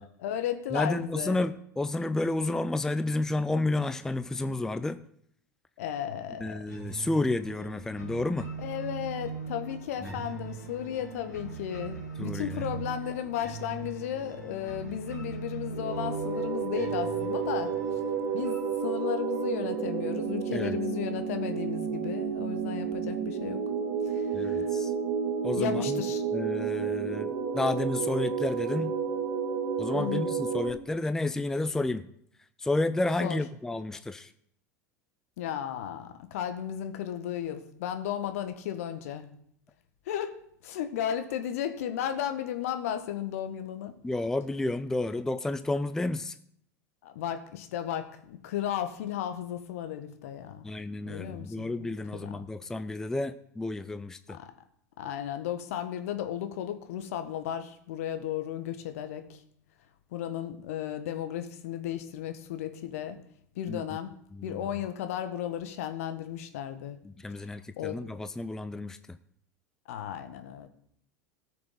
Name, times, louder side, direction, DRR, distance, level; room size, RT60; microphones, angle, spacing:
voice 1, 0.2-1.4 5.8-6.6 8.6-17.7 18.3-23.6 24.1-24.7 25.5-26.2 29.9-30.3 33.2-33.4 35.4-39.3 40.1-43.9 47.0-50.7 51.0-52.4 54.3-54.5 55.0-59.4 60.1-63.2 63.5-64.1 64.4-67.0 67.8-68.0 69.9-70.7, left 10 dB, 55° left, 8 dB, 1.4 m, -34 dB
voice 2, 0.7-5.0 6.4-8.5 10.0-10.1 12.2-12.6 20.5-20.8 24.3-24.9 25.4-25.8 26.3-27.3 27.5-28.9 29.8-32.0 32.6-34.3 44.0-46.4 50.6-54.4 63.7-63.8 64.4-64.7 67.2-69.2, left 2 dB, 5° left, 12 dB, 0.5 m, -31 dB
sound 1, 6.7-19.7, right 5 dB, 90° left, 2.3 m, -41 dB
sound 2, 15.7-30.7, right 6 dB, 50° right, 1.8 m, -31 dB
18.0 x 6.6 x 3.9 m, 0.68 s
figure-of-eight pair, 80°, 9 cm